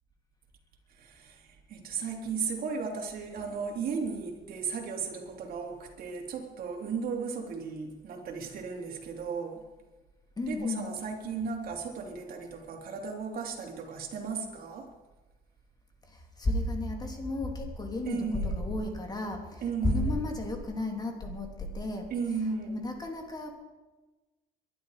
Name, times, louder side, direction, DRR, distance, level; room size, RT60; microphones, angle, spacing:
voice 1, 1.0-9.6 10.4-14.9 18.1-18.6 19.6-20.2 22.1-22.8, right 5 dB, 60° right, 1 dB, 3.3 m, -35 dB
voice 2, 10.4-10.9 16.1-22.1 22.4-23.5, left 2 dB, 25° left, 3 dB, 3.1 m, -33 dB
22.0 x 11.5 x 5.0 m, 1.2 s
cardioid pair, 110°, 17 cm